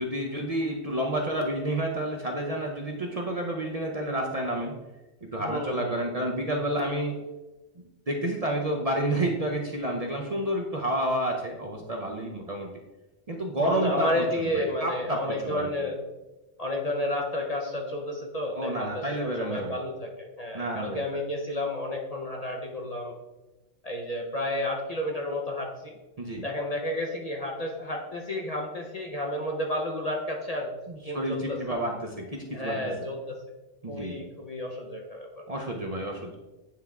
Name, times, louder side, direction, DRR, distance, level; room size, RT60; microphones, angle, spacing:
voice 1, 0.0-4.7 5.2-7.2 8.1-12.7 13.3-14.2 14.5-15.7 18.6-19.8 20.5-21.0 26.2-26.4 30.9-32.9 33.8-34.3 35.5-36.4, right 1 dB, 40° right, 0 dB, 0.6 m, -30 dB
voice 2, 5.4-6.1 13.6-16.0 16.6-23.1 23.8-26.0 26.4-30.7 31.0-31.6 32.5-33.4 33.9-35.4, left 1 dB, 40° left, 0 dB, 0.7 m, -31 dB
9.3 x 3.4 x 3.5 m, 1.1 s
omnidirectional pair, 1.2 m